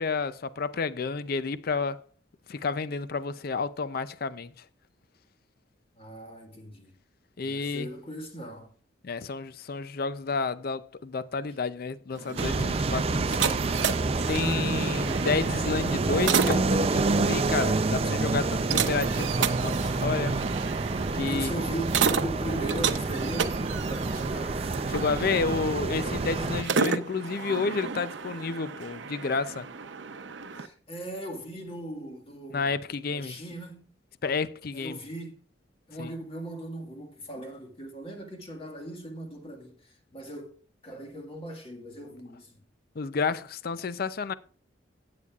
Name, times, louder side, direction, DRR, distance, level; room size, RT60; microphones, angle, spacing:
voice 1, 0.0-2.0 2.5-4.5 7.4-7.9 9.0-13.5 14.3-20.4 21.1-21.5 24.9-29.7 32.5-33.3 34.2-35.0 36.0-36.1 43.0-44.3, left 4 dB, 55° left, 0.5 m, -30 dB
voice 2, 6.0-6.9 7.4-8.7 21.3-24.7 30.5-32.7 33.1-33.9 34.7-35.4 35.9-40.5 40.8-42.5, right 1 dB, 30° left, 1.7 m, -39 dB
sound 1, 12.1-30.7, right 6 dB, 75° right, 0.7 m, -32 dB
sound 2, 12.4-26.6, right 3 dB, 30° right, 0.5 m, -28 dB
15.0 x 8.6 x 2.4 m
head